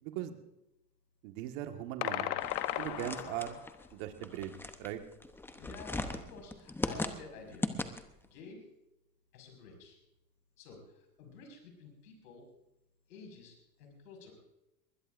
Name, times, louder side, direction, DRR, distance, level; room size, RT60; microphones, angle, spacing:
voice 1, 0.0-0.4 1.2-2.4 2.8-3.6 3.9-4.5 4.8-5.0, right 12 dB, 55° right, 6 dB, 1.8 m, -39 dB
sound 1, 2.0-3.7, left 14 dB, 50° left, 1.1 m, -36 dB
sound 2, 2.4-8.2, left 2 dB, 5° left, 0.8 m, -39 dB
voice 2, 5.5-7.7 8.2-8.6 9.3-10.0 10.6-12.4 13.1-14.3, left 4 dB, 75° left, 3 dB, 5.7 m, -51 dB
20.5 x 20.0 x 2.6 m, 0.88 s
hypercardioid pair, 110°, 48 cm